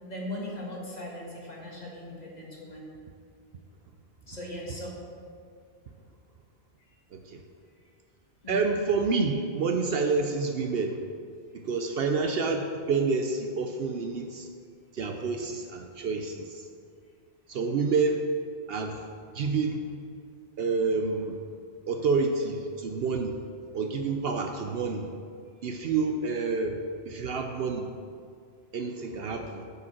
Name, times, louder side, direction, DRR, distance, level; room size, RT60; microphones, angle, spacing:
voice 1, 0.1-2.9 4.3-5.0 8.4-8.6, left 1 dB, 35° left, -3 dB, 1.7 m, -39 dB
voice 2, 7.1-7.4 8.5-11.0 11.6-14.5 14.9-16.6 17.5-18.2 18.7-19.0 19.3-19.8 20.6-21.4 21.9-23.4 23.7-25.1 25.6-27.9 28.7-29.6, right 4 dB, 65° right, 5 dB, 0.8 m, -28 dB
9.2 x 5.1 x 6.0 m, 2.2 s
omnidirectional pair, 1.2 m